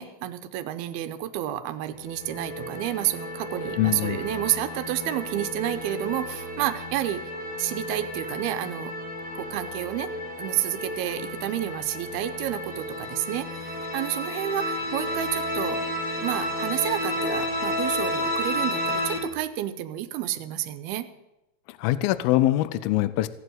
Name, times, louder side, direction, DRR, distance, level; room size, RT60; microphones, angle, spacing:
voice 1, 0.0-7.2 7.6-8.9 9.4-10.1 10.4-15.8 16.2-21.1, right 13 dB, 80° right, 10 dB, 2.6 m, -30 dB
sound 1, 1.8-19.2, left 1 dB, 60° left, 0.8 m, -32 dB
voice 2, 3.8-4.2 21.7-23.3, left 15 dB, 80° left, 15 dB, 2.3 m, -23 dB
17.0 x 8.2 x 7.9 m, 0.95 s
omnidirectional pair, 4.7 m